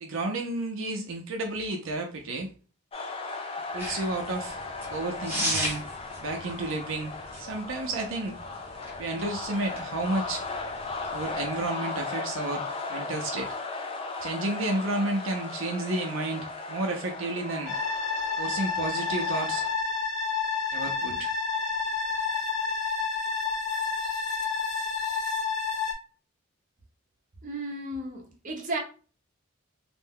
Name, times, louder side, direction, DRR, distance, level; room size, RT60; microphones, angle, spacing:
voice 1, 0.0-2.5 3.7-4.6 4.9-5.8 6.2-8.3 9.0-10.4 11.1-13.5 14.2-17.7 18.4-19.7 20.7-21.3, right 2 dB, 70° right, 0.5 m, -31 dB
sound 1, 2.9-19.7, left 3 dB, 25° left, 0.4 m, -37 dB
sound 2, 3.8-11.7, equal, 10° right, 1.0 m, -38 dB
sound 3, 17.7-25.9, left 5 dB, 80° left, 0.8 m, -29 dB
voice 2, 27.4-28.8, right 2 dB, 40° right, 0.7 m, -34 dB
2.5 x 2.1 x 3.5 m
head